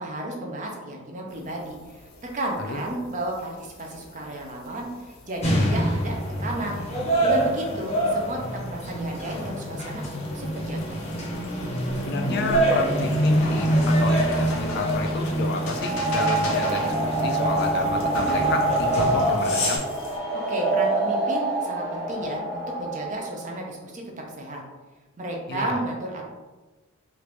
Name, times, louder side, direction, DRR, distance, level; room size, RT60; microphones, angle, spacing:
voice 1, 0.0-2.1 2.3-6.8 7.2-11.0 20.3-24.6 25.2-26.2, right 1 dB, 35° right, 0 dB, 0.5 m, -33 dB
sound 1, 1.3-20.2, left 2 dB, 85° left, 0.7 m, -41 dB
sound 2, 5.4-19.8, right 1 dB, 30° left, 0.7 m, -25 dB
voice 2, 12.0-19.8 25.5-25.8, left 3 dB, 50° left, 4 dB, 0.3 m, -31 dB
sound 3, 15.6-23.3, right 2 dB, 85° right, 1.4 m, -26 dB
3.2 x 2.5 x 3.2 m, 1.2 s
head